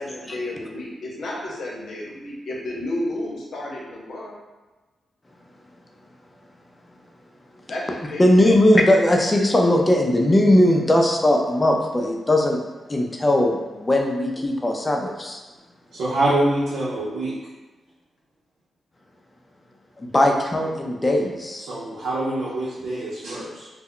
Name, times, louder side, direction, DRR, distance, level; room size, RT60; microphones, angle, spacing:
voice 1, 0.0-4.4 7.7-8.2, left 1 dB, 75° left, -3 dB, 0.7 m, -31 dB
voice 2, 8.2-12.6 12.9-15.4 20.0-21.7, left 1 dB, 25° left, 2 dB, 0.4 m, -19 dB
voice 3, 15.9-17.3 21.6-23.7, right 1 dB, 85° right, -9 dB, 0.6 m, -25 dB
2.1 x 2.1 x 3.7 m, 1.2 s
cardioid pair, 70°, 0 cm